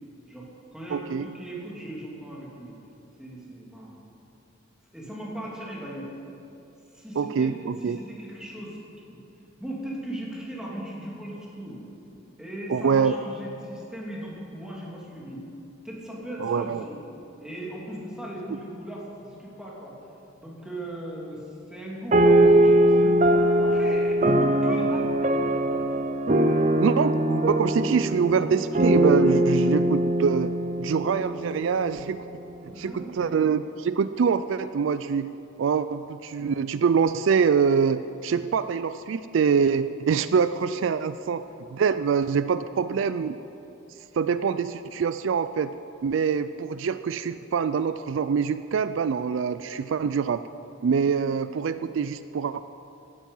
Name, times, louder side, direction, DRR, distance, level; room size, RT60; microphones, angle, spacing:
voice 1, 0.3-2.7 3.2-3.9 4.9-6.1 6.9-8.8 9.6-11.8 12.4-15.4 15.8-17.0 17.4-19.9 20.4-25.1 32.6-33.3 35.7-35.8, right 1 dB, 5° right, -4 dB, 2.9 m, -38 dB
voice 2, 0.9-1.3 7.2-8.0 12.7-13.2 16.4-16.8 26.8-30.5 30.8-32.2 32.8-35.3 35.6-41.4 41.7-43.4 44.1-45.7 46.0-50.4 50.8-52.6, right 6 dB, 65° right, 13 dB, 0.3 m, -24 dB
sound 1, 22.1-31.9, right 1 dB, 35° right, 0.7 m, -21 dB
16.5 x 12.0 x 5.5 m, 2.8 s
head